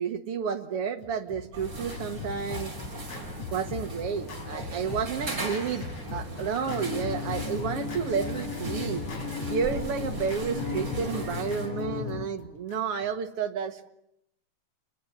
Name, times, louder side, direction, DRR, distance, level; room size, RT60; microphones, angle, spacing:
voice 1, 0.0-2.7 3.5-9.1 9.5-13.9, right 6 dB, 55° right, 7 dB, 2.3 m, -31 dB
Scratching (performance technique), 1.0-13.1, left 4 dB, 60° left, 5.0 m, -41 dB
sound 1, 1.5-11.7, right 1 dB, 35° right, 6.2 m, -38 dB
sound 2, 6.7-12.3, left 5 dB, 90° left, 3.0 m, -35 dB
27.5 x 21.5 x 9.8 m, 0.78 s
omnidirectional pair, 3.5 m